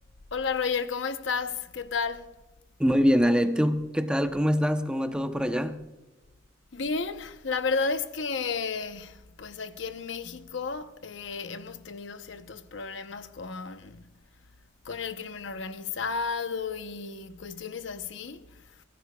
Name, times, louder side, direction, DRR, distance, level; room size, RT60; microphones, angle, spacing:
voice 1, 0.3-2.4 6.7-14.1 14.8-18.8, left 5 dB, 65° left, 0.8 m, -33 dB
voice 2, 2.8-5.8, equal, 5° right, 0.7 m, -24 dB
23.5 x 17.0 x 2.3 m
head